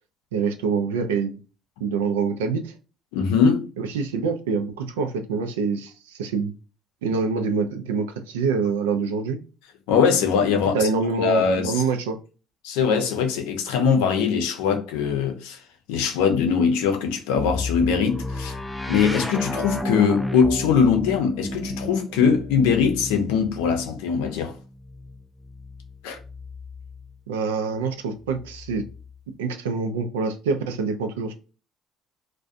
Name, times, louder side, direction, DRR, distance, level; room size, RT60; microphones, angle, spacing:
voice 1, 0.3-1.4 1.8-2.7 3.9-6.5 7.0-9.4 10.7-12.2 27.3-28.8 29.4-31.3, right 5 dB, 85° right, 0.4 m, -25 dB
voice 2, 3.1-3.7 9.9-10.9 11.2-11.8 12.6-15.6 15.9-18.6 18.9-24.5 26.0-26.2, left 6 dB, 80° left, 0.5 m, -21 dB
sound 1, 17.4-27.2 28.2-29.2, left 1 dB, 5° left, 0.4 m, -33 dB
2.4 x 2.1 x 2.5 m
hypercardioid pair, 65°, 0 cm